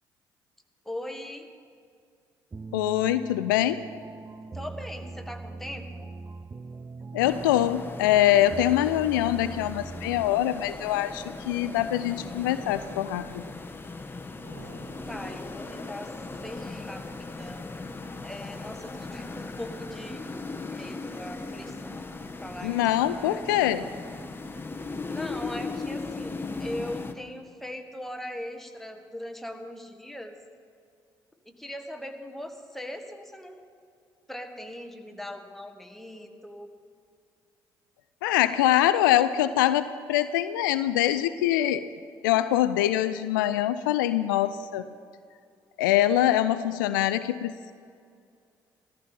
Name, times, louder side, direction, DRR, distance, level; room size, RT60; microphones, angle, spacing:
voice 1, 0.8-1.5 4.5-6.1 15.1-16.1 16.4-17.7 18.2-20.3 20.7-23.4 25.1-30.4 31.4-33.6 34.3-36.7, left 1 dB, ahead, 4 dB, 1.7 m, -40 dB
sound 1, 2.5-10.6, right 3 dB, 25° right, 0.5 m, -41 dB
voice 2, 2.7-3.8 7.1-13.5 22.6-23.9 38.2-41.8 42.2-44.9 45.8-47.7, left 12 dB, 80° left, 13 dB, 0.4 m, -24 dB
sound 2, 7.2-27.1, left 3 dB, 20° left, 1.2 m, -38 dB
sound 3, 14.4-16.7, right 2 dB, 80° right, 1.9 m, -51 dB
14.5 x 14.0 x 5.5 m, 2.3 s
hypercardioid pair, 45°, 11 cm